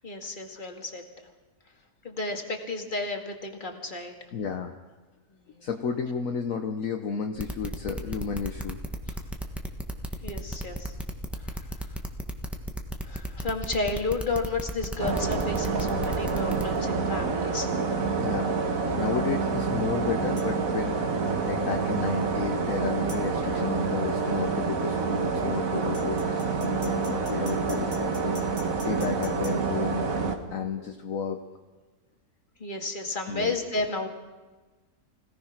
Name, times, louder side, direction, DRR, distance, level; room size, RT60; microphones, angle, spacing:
voice 1, 0.0-1.1 2.0-4.1 5.3-5.7 10.2-10.9 11.4-12.0 13.0-17.8 30.8-30.9 32.6-34.1, left 3 dB, 30° left, 3 dB, 2.2 m, -32 dB
voice 2, 4.3-4.7 5.6-8.8 18.2-18.6 19.0-28.6 28.8-30.1 30.5-31.4 33.3-33.6, left 6 dB, 60° left, 4 dB, 1.3 m, -32 dB
sound 1, 7.4-16.8, right 1 dB, ahead, 1.3 m, -34 dB
sound 2, 15.0-30.4, right 4 dB, 60° right, 1.9 m, -28 dB
sound 3, 20.4-20.5 23.1-23.3 25.9-29.6, equal, 40° right, 2.5 m, -45 dB
25.0 x 17.5 x 5.9 m, 1.3 s
omnidirectional pair, 1.6 m